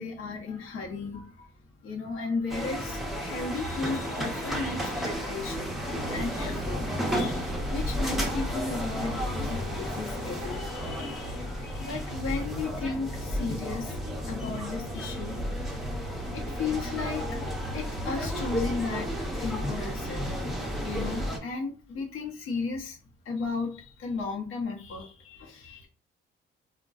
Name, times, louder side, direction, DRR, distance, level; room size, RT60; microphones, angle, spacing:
voice 1, 0.0-1.5 1.8-14.0 14.3-15.9 16.3-17.4 17.7-20.4 20.8-23.0 23.2-25.9, left 4 dB, 80° left, 1 dB, 0.8 m, -35 dB
sound 1, 2.5-21.4, equal, ahead, 0.5 m, -32 dB
sound 2, 8.9-12.1, left 5 dB, 60° left, 1.1 m, -46 dB
3.6 x 2.2 x 2.3 m, 0.38 s
cardioid pair, 145°, 21 cm